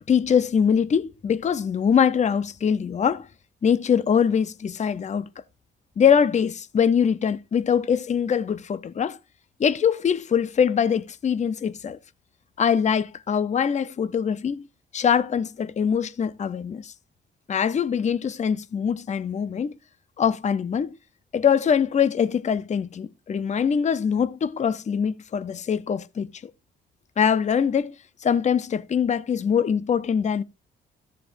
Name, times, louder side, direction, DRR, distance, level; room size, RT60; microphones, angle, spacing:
voice 1, 0.1-3.3 3.6-5.3 6.0-9.2 9.6-12.0 12.6-14.6 14.9-16.9 17.5-19.7 20.2-20.9 21.3-26.5 27.2-27.9 28.2-30.4, left 7 dB, 35° left, 0.7 m, -23 dB
13.5 x 7.5 x 2.6 m
cardioid pair, 90°, 20 cm